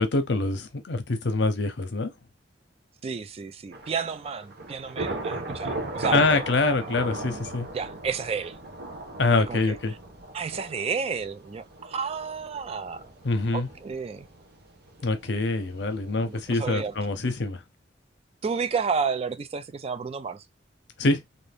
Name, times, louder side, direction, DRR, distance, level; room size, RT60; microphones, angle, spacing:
voice 1, 0.0-2.1 6.1-7.7 9.2-9.9 13.2-13.7 15.0-17.6 21.0-21.2, left 3 dB, 70° left, 0.7 m, -25 dB
voice 2, 3.0-6.9 7.7-8.6 9.3-9.8 10.3-13.0 13.5-14.3 16.2-16.9 18.4-20.4, right 5 dB, 35° right, 0.3 m, -31 dB
Thunder / Rain, 3.7-17.3, right 2 dB, 60° right, 0.8 m, -38 dB
2.6 x 2.6 x 3.4 m
head